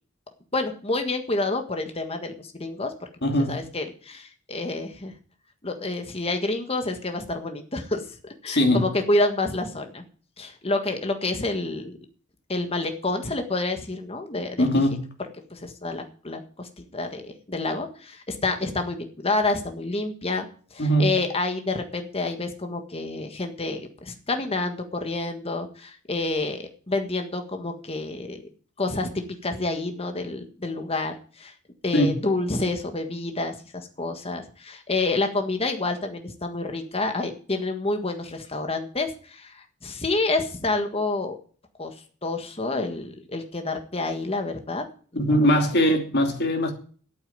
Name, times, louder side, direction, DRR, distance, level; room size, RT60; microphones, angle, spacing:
voice 1, 0.5-2.9 3.5-5.1 5.6-10.0 10.4-11.9 12.5-14.6 15.5-20.5 20.7-28.4 28.8-31.5 31.8-41.4 41.8-41.9 42.2-44.8 45.1-45.6, left 2 dB, 30° left, 1.6 m, -28 dB
voice 2, 3.2-3.6 8.5-8.9 14.6-15.0 20.8-21.2 31.9-32.2 45.1-46.7, equal, 50° left, 2.8 m, -21 dB
8.8 x 8.7 x 9.3 m
head